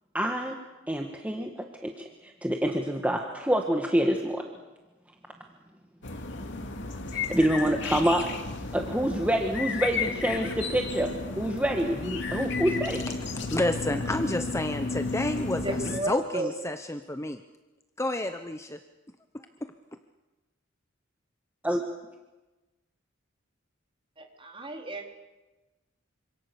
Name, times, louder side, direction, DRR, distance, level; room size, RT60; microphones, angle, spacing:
voice 1, 0.1-0.6 0.9-4.4 7.1-8.2 8.7-13.0 21.6-21.8, right 1 dB, 5° right, 2 dB, 1.7 m, -27 dB
sound 1, 6.0-16.0, left 4 dB, 65° left, 2.7 m, -33 dB
voice 2, 13.5-15.8 16.1-17.4 18.0-18.8 19.3-19.7, left 1 dB, 15° left, 8 dB, 0.9 m, -30 dB
voice 3, 15.5-16.5 24.2-25.1, right 1 dB, 25° right, 2 dB, 3.9 m, -33 dB
27.5 x 26.0 x 7.0 m, 1.1 s
head